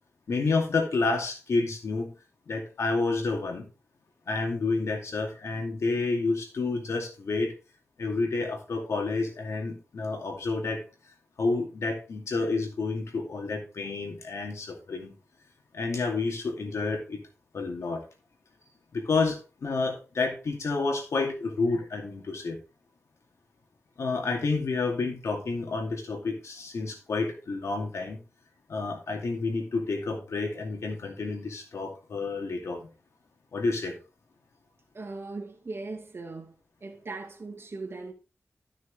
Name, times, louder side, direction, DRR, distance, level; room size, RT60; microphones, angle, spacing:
voice 1, 0.3-2.1 2.5-3.7 4.3-7.5 8.0-10.8 11.4-15.1 15.7-17.2 17.5-18.1 18.9-22.6 24.0-28.2 28.7-32.9 33.5-34.0, left 3 dB, 90° left, 2.5 m, -29 dB
voice 2, 34.9-36.5 36.8-38.1, right 3 dB, 55° right, 2.3 m, -39 dB
13.0 x 6.3 x 3.3 m
wide cardioid pair, 85°, 5 cm